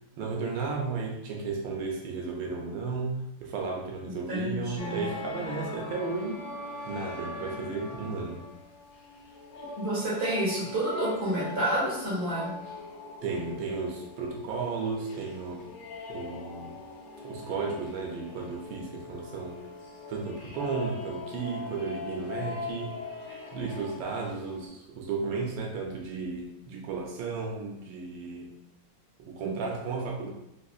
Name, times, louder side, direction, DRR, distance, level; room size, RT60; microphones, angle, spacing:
voice 1, 0.2-6.4 6.9-8.4 13.2-15.7 16.1-16.8 17.2-19.6 20.1-23.0 23.5-28.5 29.2-30.3, right 4 dB, 90° right, 0 dB, 1.3 m, -34 dB
voice 2, 4.0-5.1 9.7-12.6, right 1 dB, 35° right, -9 dB, 1.6 m, -29 dB
sound 1, 4.8-24.7, left 3 dB, 80° left, 1.4 m, -41 dB
3.5 x 2.6 x 2.3 m, 0.83 s
omnidirectional pair, 2.0 m